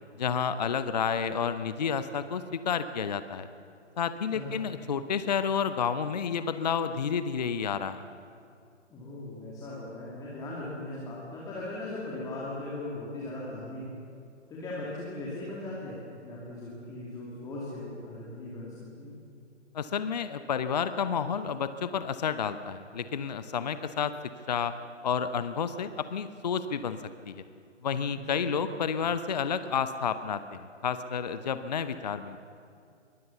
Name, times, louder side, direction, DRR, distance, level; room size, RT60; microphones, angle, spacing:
voice 1, 0.2-3.5 4.0-8.0 19.7-24.1 24.5-24.7 25.0-27.0 27.3-27.4 27.8-32.4, left 7 dB, 35° left, 12 dB, 0.7 m, -30 dB
voice 2, 4.3-4.7 8.9-13.8 14.5-19.1 28.1-28.6, left 2 dB, 10° left, -6 dB, 2.5 m, -39 dB
22.5 x 19.0 x 7.0 m, 2.4 s
figure-of-eight pair, 140°, 36 cm